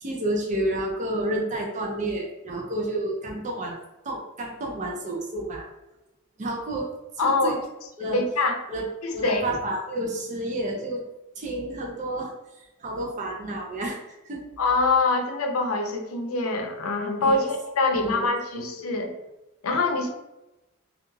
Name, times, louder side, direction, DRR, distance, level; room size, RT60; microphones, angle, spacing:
voice 1, 0.0-3.8 4.1-5.7 6.4-6.9 7.2-7.6 8.0-8.3 8.7-8.9 9.1-11.0 11.4-12.3 12.8-14.4 17.2-17.5 17.9-18.3 18.5-19.0, right 1 dB, 35° right, 0 dB, 0.4 m, -30 dB
voice 2, 7.2-7.6 8.1-8.6 9.0-9.4 14.6-19.1 19.6-20.1, left 3 dB, 85° left, 4 dB, 0.5 m, -24 dB
2.4 x 2.3 x 3.0 m, 0.97 s
head